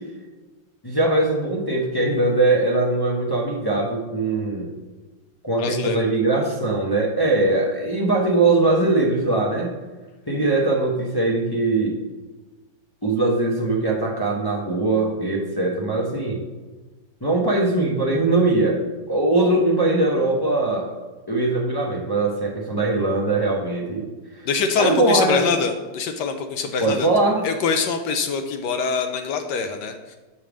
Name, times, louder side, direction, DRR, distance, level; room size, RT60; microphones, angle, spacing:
voice 1, 0.8-4.7 5.4-9.7 10.3-11.9 13.0-16.4 17.2-18.8 19.1-20.9 21.3-24.1 24.8-25.4 26.8-27.5, right 2 dB, 25° left, -3 dB, 0.5 m, -21 dB
voice 2, 5.6-6.0 24.5-27.1 27.4-30.2, left 5 dB, 70° left, 6 dB, 1.1 m, -24 dB
7.4 x 3.4 x 6.1 m, 1.2 s
omnidirectional pair, 2.0 m